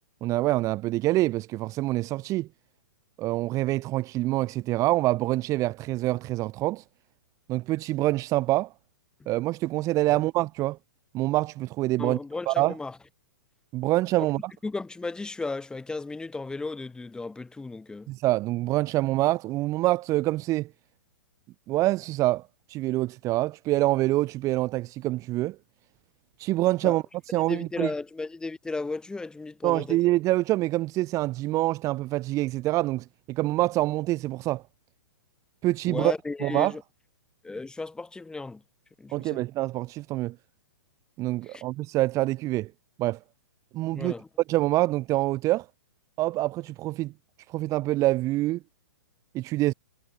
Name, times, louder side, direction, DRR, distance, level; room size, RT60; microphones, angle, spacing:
voice 1, 0.2-2.5 3.2-6.8 7.5-8.7 9.3-10.8 11.1-12.2 12.5-12.7 13.7-14.5 18.1-20.7 21.7-25.6 26.4-27.0 27.3-27.9 29.6-34.6 35.6-36.1 36.4-36.7 39.1-40.3 41.2-42.7 43.0-43.2 43.7-44.1 44.5-45.7 46.2-47.1 47.5-48.6 49.3-49.7, right 17 dB, 30° right, 3.0 m, -26 dB
voice 2, 12.0-13.0 14.6-18.1 26.8-27.0 27.5-30.0 35.8-36.8 37.4-38.6 39.0-39.4 41.5-41.6 43.9-44.3, left 3 dB, 5° left, 7.9 m, -35 dB
figure-of-eight pair, 120°, 11 cm